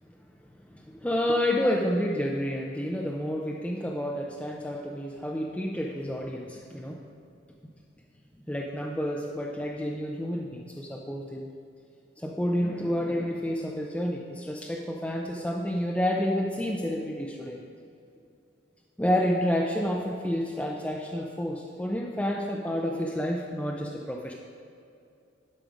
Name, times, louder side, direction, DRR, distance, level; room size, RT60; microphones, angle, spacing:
voice 1, 0.7-7.0 8.5-11.5 12.2-17.6 19.0-24.3, equal, 5° left, -1 dB, 0.5 m, -29 dB
11.5 x 4.9 x 5.0 m, 2.5 s
head